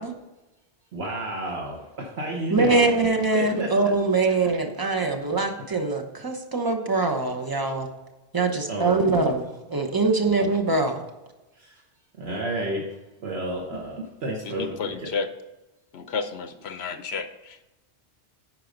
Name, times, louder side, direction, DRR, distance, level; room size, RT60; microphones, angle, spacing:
voice 1, 0.9-2.9 3.3-3.7 8.7-9.3 10.2-10.3 11.5-11.8 12.2-12.8 13.2-15.1, right 1 dB, 70° right, -1 dB, 1.4 m, -31 dB
voice 2, 2.5-7.9 8.3-11.0, right 3 dB, 20° right, 4 dB, 0.9 m, -23 dB
voice 3, 14.4-15.3 15.9-17.6, left 5 dB, 70° left, 10 dB, 1.0 m, -31 dB
10.5 x 4.7 x 5.2 m, 1.0 s
omnidirectional pair, 1.1 m